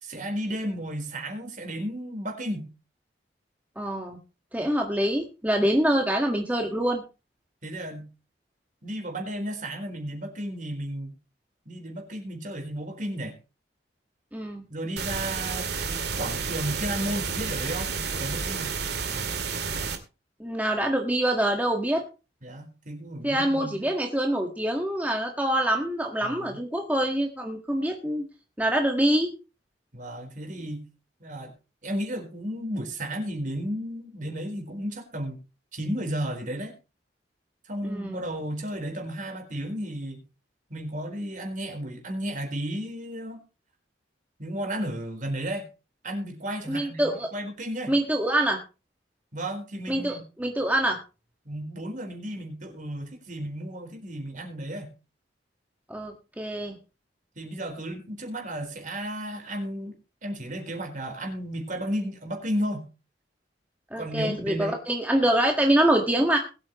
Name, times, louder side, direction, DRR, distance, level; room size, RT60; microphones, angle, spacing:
voice 1, 0.0-2.7 7.6-8.1 8.8-11.1 11.7-13.3 14.7-18.7 22.4-23.9 26.2-26.6 29.9-30.8 31.2-31.5 31.8-35.4 35.7-36.7 37.7-40.2 40.7-43.4 44.4-45.7 46.0-48.0 49.3-50.2 51.4-54.9 57.4-59.9 60.2-62.9 64.0-64.8, equal, 45° right, 4 dB, 4.3 m, -33 dB
voice 2, 3.7-4.2 4.5-7.0 14.3-14.6 20.4-22.0 23.2-28.2 28.6-29.3 37.8-38.2 46.7-47.3 47.9-48.6 49.9-51.0 55.9-56.7 63.9-66.4, right 1 dB, 10° right, 2 dB, 1.7 m, -25 dB
sound 1, 15.0-20.0, right 5 dB, 65° right, 2.3 m, -30 dB
21.5 x 8.7 x 3.1 m, 0.30 s
head